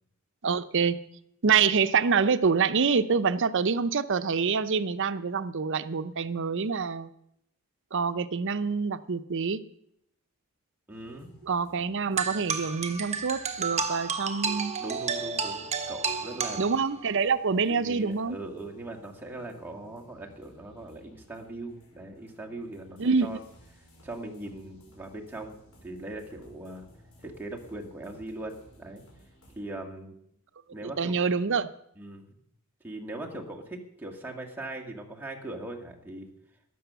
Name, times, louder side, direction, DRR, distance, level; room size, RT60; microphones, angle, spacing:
voice 1, 0.4-1.0 1.4-7.1 7.9-9.6 11.4-14.7 16.6-18.4 23.0-23.4 30.8-31.7, right 5 dB, 60° right, 14 dB, 0.6 m, -26 dB
sound 1, 10.9-29.6, equal, 70° left, 6.0 m, -58 dB
voice 2, 10.9-11.3 14.8-16.6 17.7-23.4 24.0-26.8 27.2-29.0 29.6-30.2 30.7-31.1 32.0-32.3 32.8-36.3, right 2 dB, 10° right, -1 dB, 2.0 m, -40 dB
sound 2, 12.2-17.2, right 5 dB, 30° right, 1.2 m, -32 dB
14.0 x 11.0 x 6.9 m, 0.75 s
head